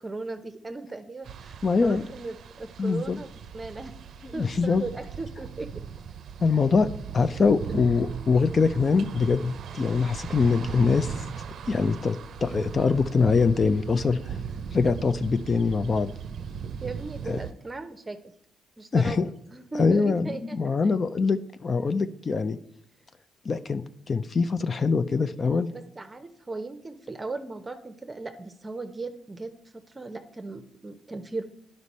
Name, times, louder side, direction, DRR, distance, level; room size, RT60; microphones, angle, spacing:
voice 1, 0.0-3.3 3.5-3.9 4.3-5.7 7.8-7.9 16.8-18.2 18.8-19.2 19.5-20.6 25.7-29.5 29.9-31.4, right 3 dB, 20° right, 8 dB, 0.7 m, -37 dB
sound 1, 1.2-17.5, right 7 dB, 60° right, 0.5 m, -38 dB
voice 2, 1.6-2.0 2.8-3.2 4.3-4.8 6.4-6.9 7.1-11.2 11.7-14.4 14.7-16.1 17.3-17.4 18.9-19.3 19.7-22.6 23.5-25.7, left 4 dB, 40° left, 11 dB, 0.4 m, -23 dB
9.8 x 5.3 x 4.1 m, 0.74 s
cardioid pair, 90°, 0 cm